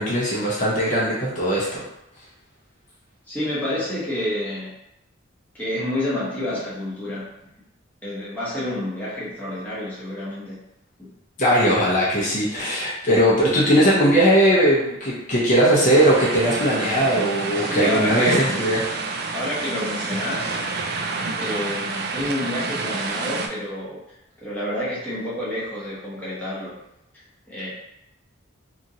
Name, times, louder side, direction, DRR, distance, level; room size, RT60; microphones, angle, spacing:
voice 1, 0.0-1.8 11.4-18.8, equal, 40° left, -6 dB, 0.7 m, -19 dB
voice 2, 3.3-4.7 5.5-7.4 8.0-10.6 11.0-11.1 17.5-18.7 19.3-20.6 21.4-24.0 24.4-26.8 27.5-27.7, left 1 dB, 10° left, -9 dB, 0.8 m, -28 dB
sound 1, 15.9-23.5, right 3 dB, 55° right, 0.3 m, -28 dB
2.8 x 2.5 x 2.7 m, 0.84 s
head